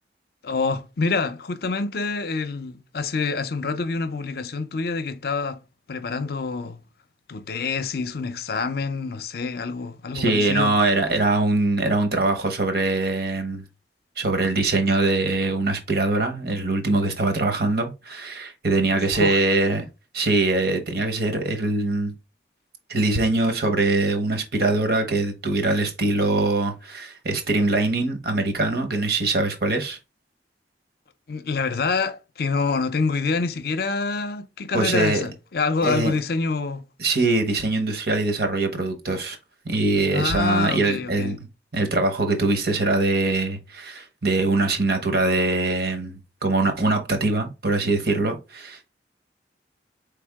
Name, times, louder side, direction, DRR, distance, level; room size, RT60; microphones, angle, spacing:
voice 1, 0.4-5.6 5.9-6.8 7.3-10.7 19.0-19.4 31.3-36.8 40.1-41.4, left 4 dB, 55° left, 0.6 m, -26 dB
voice 2, 10.1-13.6 14.2-19.8 20.1-22.1 22.9-30.0 34.7-35.2 35.8-36.1 37.0-39.4 39.6-41.4 41.7-48.9, right 2 dB, 60° right, 1.0 m, -23 dB
4.3 x 3.4 x 3.5 m
head